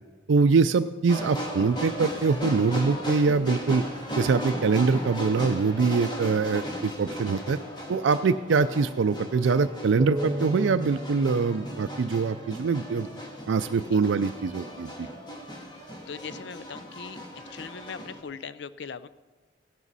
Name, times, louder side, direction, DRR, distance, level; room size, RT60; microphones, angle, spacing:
voice 1, 0.3-3.8 4.2-7.6 7.9-13.1 13.5-15.1, right 4 dB, 85° right, 10 dB, 0.4 m, -24 dB
sound 1, 1.1-18.2, equal, 25° left, 1.8 m, -37 dB
sound 2, 10.0-13.4, right 1 dB, 15° right, 0.6 m, -35 dB
voice 2, 16.1-17.2 17.5-19.1, left 6 dB, 70° left, 15 dB, 0.4 m, -40 dB
17.5 x 11.0 x 4.1 m, 1.4 s
head